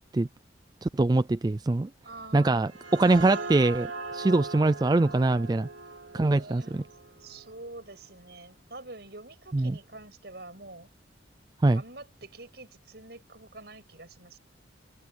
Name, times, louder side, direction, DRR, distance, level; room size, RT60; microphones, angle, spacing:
voice 1, 0.8-1.9 2.3-5.7 6.1-6.8 9.5-9.8 11.6-11.8, right 2 dB, 20° right, 0.3 m, -23 dB
voice 2, 2.0-2.7 6.1-6.9 7.2-10.9 11.7-14.4, right 2 dB, 60° right, 6.9 m, -46 dB
sound 1, 2.6-7.9, right 3 dB, 90° right, 4.1 m, -40 dB
head